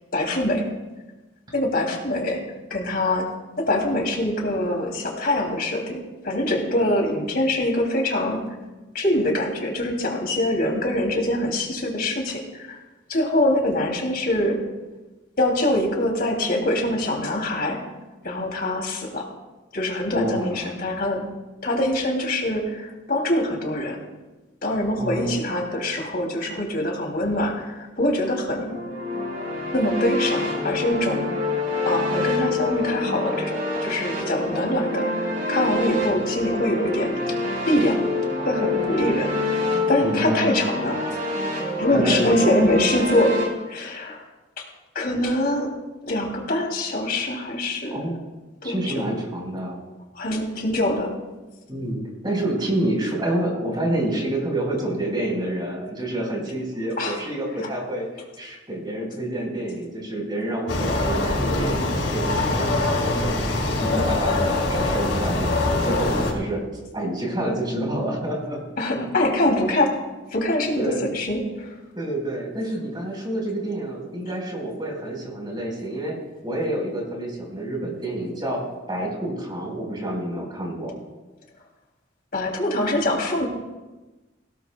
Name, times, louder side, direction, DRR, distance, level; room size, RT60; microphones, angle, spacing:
voice 1, 0.1-0.6 1.5-2.4 2.7-3.3 3.6-8.4 8.9-12.8 13.1-14.6 15.4-17.8 18.2-19.2 19.7-21.2 21.6-24.0 24.6-28.8 29.7-31.3 31.8-37.1 37.7-38.0 38.4-39.3 39.9-41.0 41.8-43.4 43.7-44.2 44.9-45.7 46.0-48.1 48.6-49.0 50.1-51.1 57.0-57.2 57.6-57.7 68.8-69.9 70.3-71.7 82.3-83.5, left 1 dB, 50° left, 0 dB, 2.9 m, -24 dB
voice 2, 20.1-20.8 25.0-25.3 40.0-40.6 41.9-42.5 47.9-48.2 48.6-49.8 51.7-58.1 58.4-66.6 66.9-68.6 68.9-69.0 70.8-71.0 72.0-76.1 76.4-80.9, right 1 dB, 25° right, -1 dB, 4.4 m, -28 dB
sound 1, 28.7-43.4, left 2 dB, 45° right, 4.9 m, -26 dB
sound 2, 60.7-66.3, left 2 dB, 80° left, 4.6 m, -23 dB
19.5 x 17.5 x 2.3 m, 1.1 s
head